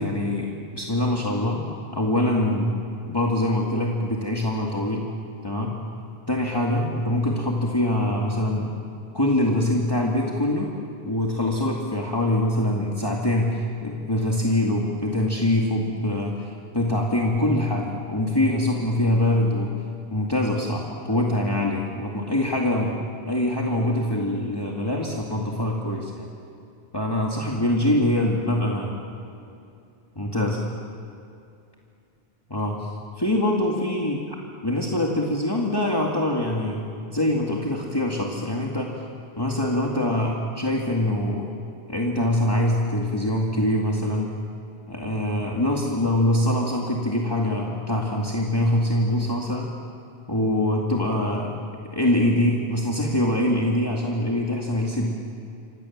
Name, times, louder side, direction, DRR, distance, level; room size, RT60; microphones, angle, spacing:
voice 1, 0.0-1.6 1.9-2.7 3.0-5.1 5.4-5.8 6.3-8.7 9.1-10.7 11.1-19.8 20.1-23.0 23.3-26.3 26.9-29.0 30.2-30.6 32.5-32.9 33.2-34.2 34.6-36.8 37.1-38.9 39.4-41.5 41.9-44.3 44.9-49.7 50.3-51.5 51.9-55.1, left 1 dB, 25° left, -2 dB, 2.3 m, -24 dB
28.5 x 26.0 x 7.4 m, 2.6 s
omnidirectional pair, 1.0 m